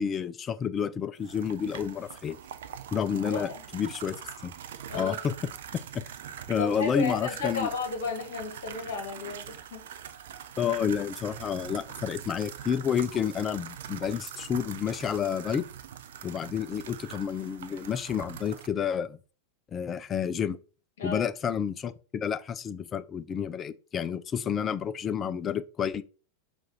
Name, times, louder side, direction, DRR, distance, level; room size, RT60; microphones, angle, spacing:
voice 1, 0.0-2.4 2.9-4.2 4.4-4.5 4.9-5.3 5.7-6.0 6.5-7.7 10.6-15.6 16.2-19.2 19.7-20.6 21.0-26.0, left 7 dB, 25° left, 0.3 m, -30 dB
sound 1, 1.2-18.7, right 9 dB, 60° right, 0.4 m, -43 dB
voice 2, 3.2-3.6 4.9-5.2 6.6-9.9 21.0-21.3, left 4 dB, 55° left, 1.2 m, -33 dB
4.7 x 2.4 x 4.2 m
figure-of-eight pair, 90°, 0 cm